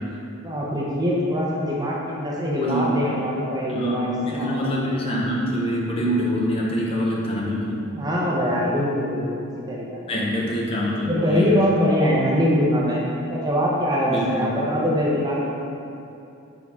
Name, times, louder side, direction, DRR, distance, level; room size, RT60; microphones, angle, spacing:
voice 1, 0.4-4.7 7.9-10.1 11.1-13.0 13.3-15.5, equal, 15° right, -5 dB, 0.7 m, -23 dB
voice 2, 2.6-3.0 3.7-7.9 10.1-11.5 14.1-14.5, equal, 25° left, -4 dB, 0.7 m, -25 dB
6.3 x 4.6 x 3.6 m, 2.7 s
head